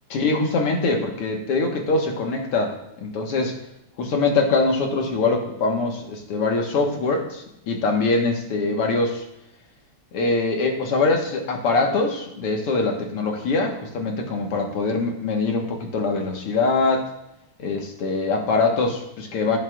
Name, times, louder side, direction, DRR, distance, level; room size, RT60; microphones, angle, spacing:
voice 1, 0.1-3.5 4.0-9.2 10.1-17.1 17.6-19.6, left 3 dB, 55° left, 1 dB, 2.1 m, -23 dB
12.5 x 9.7 x 2.5 m, 0.84 s
omnidirectional pair, 3.4 m